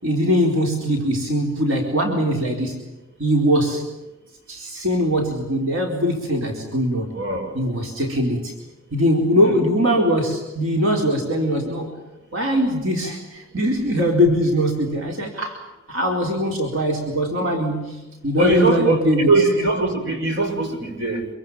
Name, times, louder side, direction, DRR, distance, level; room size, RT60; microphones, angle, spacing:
voice 1, 0.0-2.8 3.2-3.9 4.5-7.1 7.5-8.5 8.9-11.9 12.3-15.6 15.9-19.3, equal, 85° right, 1 dB, 4.4 m, -21 dB
voice 2, 7.1-7.5 9.4-9.6 18.4-19.0 19.2-21.3, right 2 dB, 60° right, 5 dB, 6.0 m, -20 dB
26.5 x 24.5 x 7.4 m, 1.0 s
head